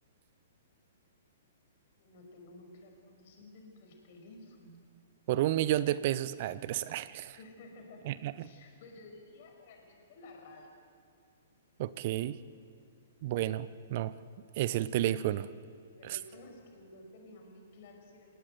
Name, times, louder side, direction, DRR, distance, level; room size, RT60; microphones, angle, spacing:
voice 1, 2.0-4.8 7.3-10.7 16.0-18.3, left 2 dB, 45° left, 3 dB, 5.7 m, -53 dB
voice 2, 5.3-7.4 8.1-8.5 11.8-12.4 13.2-14.1 14.6-15.5 16.1-16.2, right 13 dB, 45° right, 17 dB, 0.6 m, -31 dB
29.5 x 17.5 x 7.9 m, 2.2 s
figure-of-eight pair, 115°, 0 cm